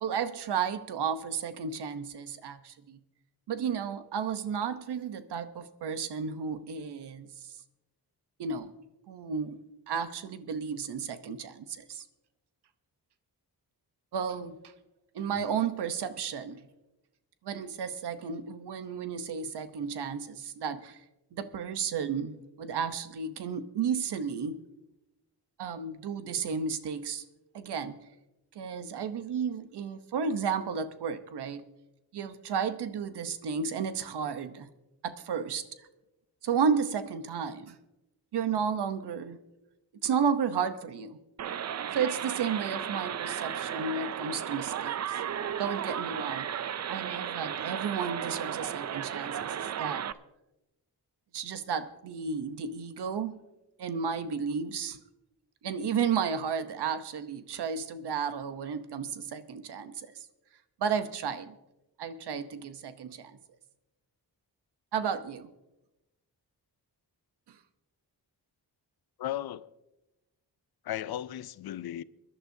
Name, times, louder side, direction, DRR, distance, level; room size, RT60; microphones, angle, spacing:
voice 1, 0.0-3.0 3.5-7.5 8.4-8.7 9.1-12.0 14.1-14.7 15.1-16.6 17.4-21.0 21.3-24.6 25.6-27.2 27.5-28.0 28.5-31.7 32.1-34.7 35.0-35.6 36.4-37.8 38.3-39.4 40.0-41.2 41.9-45.2 45.6-46.5 46.9-50.1 51.3-53.4 53.8-55.0 55.6-60.3 60.8-61.6 62.0-63.4 64.9-65.5 67.5-67.6, right 6 dB, 85° right, 0.9 m, -33 dB
sound 1, 41.4-50.1, right 9 dB, 45° right, 0.4 m, -34 dB
voice 2, 69.2-69.7 70.8-72.0, left 12 dB, 70° left, 0.5 m, -36 dB
24.0 x 11.0 x 2.7 m
wide cardioid pair, 110°, 39 cm